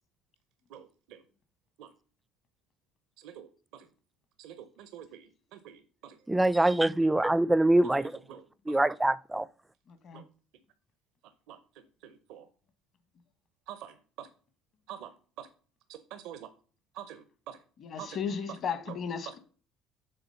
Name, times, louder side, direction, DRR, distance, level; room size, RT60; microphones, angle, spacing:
voice 1, 0.7-1.2 1.8-1.9 3.2-3.9 4.4-6.2 6.6-6.7 8.3-8.8 10.1-10.2 11.5-11.6 12.0-12.5 13.7-14.3 14.9-15.1 15.4-15.5 15.9-16.5 16.9-17.6 18.0-18.2 18.5-18.6 18.9-19.0 19.3-19.4, right 10 dB, 75° right, 0.6 m, -46 dB
voice 2, 6.3-8.2 8.7-9.5, right 1 dB, 10° right, 0.4 m, -24 dB
voice 3, 9.9-10.2 17.8-19.4, left 6 dB, 55° left, 1.2 m, -35 dB
6.9 x 3.8 x 5.6 m
supercardioid pair, 75°, 0 cm